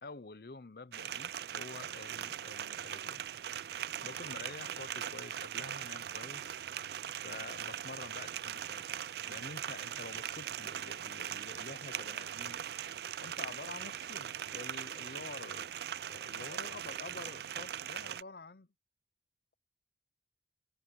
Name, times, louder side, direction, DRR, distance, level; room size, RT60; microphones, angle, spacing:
voice 1, 0.0-3.2 4.0-6.6 7.1-8.9 9.3-12.6 13.2-15.7 16.1-18.7, left 3 dB, 60° left, 0.7 m, -48 dB
sound 1, 0.9-18.2, right 10 dB, 65° right, 0.4 m, -40 dB
head